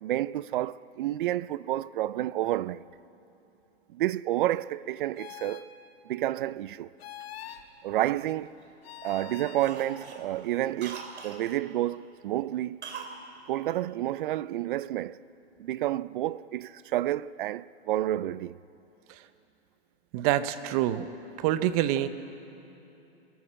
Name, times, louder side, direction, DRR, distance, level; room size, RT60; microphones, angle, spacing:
voice 1, 0.0-2.8 3.9-5.7 6.1-6.9 7.8-8.6 9.0-12.8 13.5-15.2 15.6-18.6, right 14 dB, 50° right, 0.5 m, -30 dB
sound 1, 5.2-5.7 7.0-7.6 8.8-9.7, left 10 dB, 65° left, 1.3 m, -43 dB
Cough, 7.4-8.7 9.0-9.3 9.6-11.5 12.8-13.2 13.5-13.6, right 5 dB, 85° right, 2.8 m, -43 dB
voice 2, 20.1-21.1 21.4-22.1, right 13 dB, 35° right, 0.9 m, -26 dB
22.5 x 14.0 x 8.7 m
hypercardioid pair, 140°, 33 cm